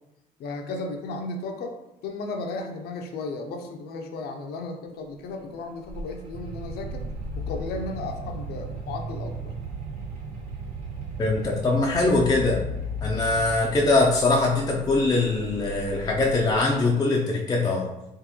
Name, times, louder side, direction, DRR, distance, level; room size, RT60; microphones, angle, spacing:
voice 1, 0.4-1.7 2.0-7.0 7.4-9.5, left 3 dB, 70° left, 4 dB, 0.6 m, -34 dB
Mechanical fan, 5.3-16.6, left 3 dB, 55° right, 1.4 m, -38 dB
sound 1, 6.3-13.6, right 6 dB, 90° right, 0.4 m, -37 dB
voice 2, 11.2-12.6 13.0-17.9, left 2 dB, 25° left, -2 dB, 0.5 m, -22 dB
3.7 x 3.1 x 3.0 m, 0.91 s
cardioid pair, 110°, 17 cm